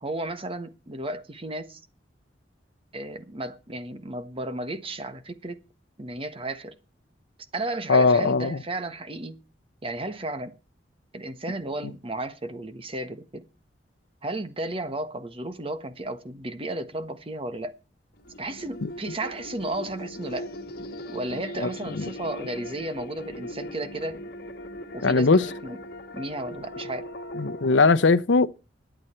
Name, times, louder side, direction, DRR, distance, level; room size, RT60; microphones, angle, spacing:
voice 1, 0.0-1.8 2.9-5.6 6.0-6.7 7.5-9.4 9.8-10.6 11.1-13.5 14.2-17.7 18.4-20.5 21.1-24.2 24.9-25.8 26.1-27.1, right 1 dB, 30° right, 1.3 m, -33 dB
voice 2, 7.9-8.6 18.8-18.9 21.6-21.7 22.0-22.1 25.0-25.5 27.4-28.5, left 4 dB, 80° left, 0.7 m, -19 dB
sound 1, 18.1-27.7, left 1 dB, 55° left, 1.7 m, -39 dB
21.5 x 9.1 x 4.4 m
head